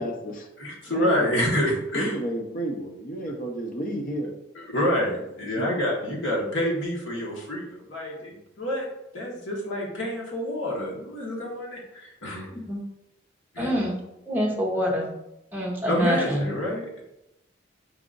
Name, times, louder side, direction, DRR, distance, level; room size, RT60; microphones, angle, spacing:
voice 1, 0.0-0.5 0.9-4.3 5.4-5.7 8.3-8.4, right 1 dB, 40° left, 2 dB, 0.6 m, -32 dB
voice 2, 0.6-2.1 4.6-12.5 13.5-13.8 15.9-17.0, equal, 65° left, -2 dB, 1.2 m, -28 dB
voice 3, 12.5-12.8 13.6-14.0 14.3-15.1 15.5-16.5, equal, 10° right, -2 dB, 0.8 m, -26 dB
4.8 x 2.4 x 3.8 m, 0.87 s
head